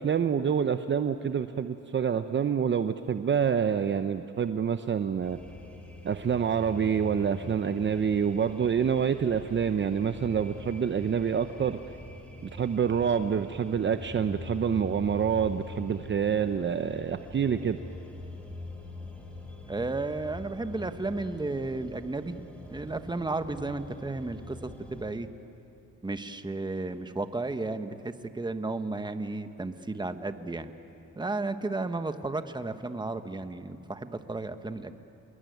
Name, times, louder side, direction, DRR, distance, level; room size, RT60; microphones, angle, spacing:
voice 1, 0.0-5.4 6.0-11.8 12.4-17.8, right 7 dB, 40° right, 9 dB, 0.8 m, -27 dB
sound 1, 5.2-25.1, left 2 dB, 5° left, 4.8 m, -44 dB
voice 2, 19.7-22.4 22.7-25.3 26.0-30.7 31.1-34.9, right 2 dB, 15° right, 9 dB, 1.4 m, -33 dB
28.0 x 21.5 x 9.4 m, 2.7 s
cardioid pair, 90°, 30 cm